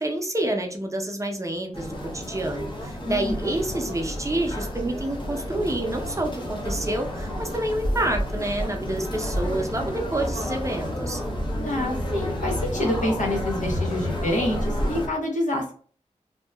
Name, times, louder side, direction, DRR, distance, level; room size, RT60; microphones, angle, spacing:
voice 1, 0.0-11.2, right 1 dB, 25° right, 3 dB, 0.6 m, -28 dB
sound 1, 1.7-15.1, equal, 40° left, 0.7 m, -30 dB
voice 2, 3.0-3.5 11.6-15.7, left 1 dB, 75° left, 0 dB, 0.9 m, -27 dB
2.7 x 2.2 x 2.2 m, 0.43 s
cardioid pair, 50°, 13 cm